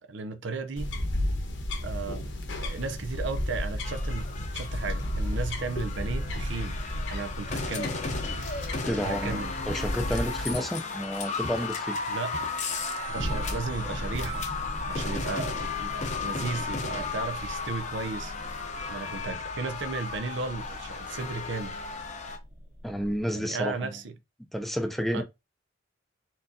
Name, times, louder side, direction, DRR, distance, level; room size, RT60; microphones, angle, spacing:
voice 1, 0.1-0.9 1.8-6.8 7.1-8.0 9.0-9.5 12.1-12.5 13.1-14.4 14.9-18.3 18.9-21.8 23.3-24.1 25.1-25.2, right 4 dB, 60° right, 0.6 m, -35 dB
sound 1, 0.8-10.5, left 1 dB, 60° left, 1.1 m, -33 dB
sound 2, 3.8-22.4, left 4 dB, 35° left, 0.8 m, -35 dB
voice 2, 8.8-12.0 22.8-23.9 24.5-25.2, equal, ahead, 0.5 m, -30 dB
sound 3, 12.7-23.2, equal, 45° right, 1.3 m, -40 dB
4.5 x 3.8 x 2.7 m
head